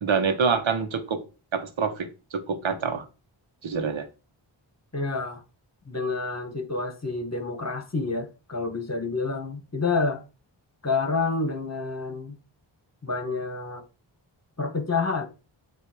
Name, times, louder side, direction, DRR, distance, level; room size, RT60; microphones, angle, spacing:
voice 1, 0.0-1.2 1.5-3.0 3.6-4.1, right 5 dB, 75° right, 1.1 m, -26 dB
voice 2, 4.9-5.4 5.9-10.2 10.8-12.4 13.0-13.8 14.6-15.3, left 4 dB, 35° left, 1.5 m, -28 dB
7.9 x 2.7 x 6.0 m
wide cardioid pair, 65°, 47 cm